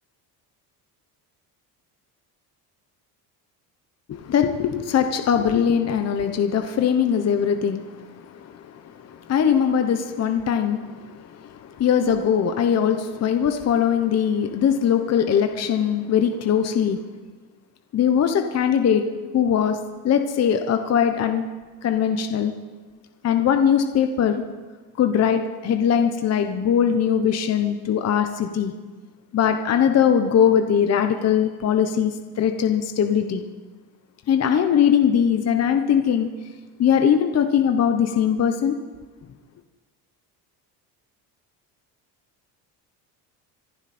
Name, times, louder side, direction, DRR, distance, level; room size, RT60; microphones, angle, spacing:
voice 1, 4.1-7.8 9.3-10.8 11.1-17.0 17.9-19.0 19.3-19.8 20.0-21.4 21.8-22.5 23.2-24.4 25.0-28.7 29.3-33.4 34.3-36.3 36.8-38.8, left 8 dB, 40° left, 6 dB, 1.0 m, -21 dB
25.5 x 11.0 x 4.3 m, 1.3 s
cardioid pair, 130°, 42 cm